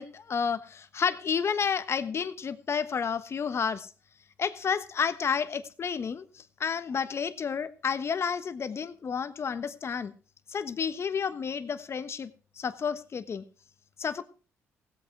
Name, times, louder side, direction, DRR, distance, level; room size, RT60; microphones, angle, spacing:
voice 1, 0.0-3.9 4.4-10.1 10.5-12.3 12.6-13.4 14.0-14.2, left 6 dB, 50° left, 12 dB, 1.2 m, -31 dB
17.0 x 8.2 x 4.6 m, 0.38 s
supercardioid pair, 65°, 6 cm